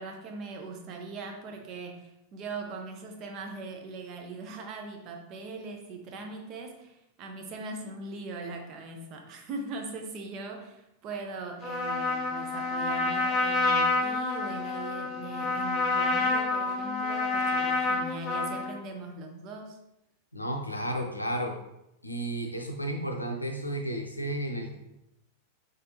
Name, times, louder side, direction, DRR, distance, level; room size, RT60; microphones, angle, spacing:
voice 1, 0.0-19.8, right 3 dB, 35° right, 3 dB, 0.6 m, -40 dB
Trumpet, 11.6-18.8, left 3 dB, 25° left, 0.9 m, -28 dB
voice 2, 20.3-21.6 22.0-24.8, right 1 dB, 85° left, 2 dB, 0.5 m, -32 dB
3.6 x 3.4 x 2.7 m, 0.85 s
figure-of-eight pair, 90°, 0 cm